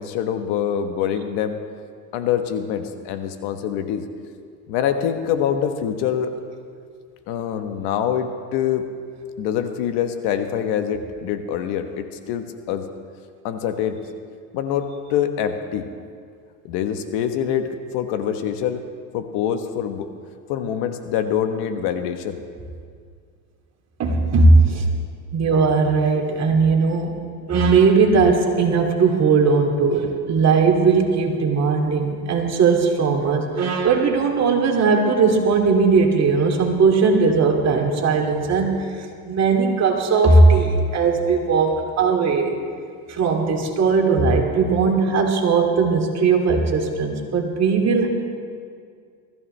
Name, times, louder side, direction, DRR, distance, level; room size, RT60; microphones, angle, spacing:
voice 1, 0.0-1.6 2.1-4.0 4.7-6.3 7.3-8.8 9.4-12.8 13.4-14.0 14.5-15.9 16.6-18.8 19.1-20.1 20.5-22.4, left 9 dB, 60° left, 7 dB, 1.2 m, -25 dB
voice 2, 24.0-24.8 25.3-27.1 27.5-42.6 43.1-48.1, right 4 dB, 35° right, 1 dB, 2.4 m, -18 dB
21.5 x 14.5 x 3.3 m, 2.2 s
supercardioid pair, 120°, 47 cm